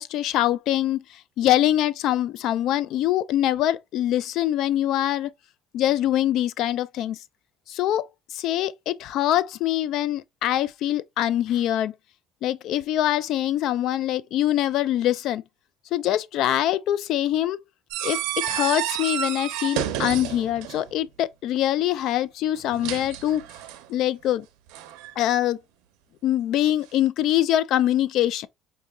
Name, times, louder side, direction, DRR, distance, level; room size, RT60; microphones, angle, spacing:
voice 1, 0.0-5.3 5.7-7.2 7.7-11.9 12.4-15.4 15.9-17.6 18.0-23.4 23.9-24.5 25.2-25.6 26.2-28.5, left 12 dB, 65° left, 0.3 m, -24 dB
sound 1, 17.9-20.9 22.5-23.9 24.7-25.1, right 11 dB, 90° right, 0.5 m, -30 dB
4.8 x 2.7 x 2.3 m
cardioid pair, 125°, 0 cm